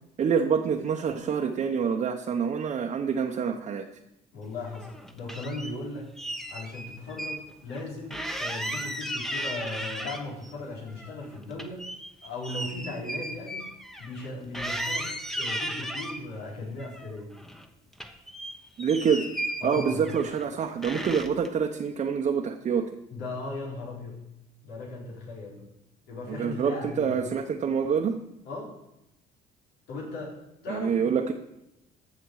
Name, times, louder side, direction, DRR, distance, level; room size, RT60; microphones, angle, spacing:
voice 1, 0.2-3.9 18.8-19.3 19.6-22.9 26.3-28.2 30.7-31.3, right 6 dB, 40° right, 3 dB, 0.9 m, -26 dB
voice 2, 4.3-6.1 6.5-11.9 12.2-13.6 14.0-17.3 19.6-20.1 23.1-24.2 24.6-25.6 26.1-27.2 28.4-28.8 29.9-30.4 30.6-31.1, left 2 dB, 90° left, -3 dB, 4.4 m, -37 dB
sound 1, 4.7-5.7 6.2-7.4 7.7-7.8 8.1-10.5 10.9-14.3 14.5-16.2 16.8-17.7 17.9-20.5 20.8-21.5, right 1 dB, ahead, 1.0 m, -35 dB
14.5 x 6.8 x 4.8 m, 0.88 s
cardioid pair, 110°, 17 cm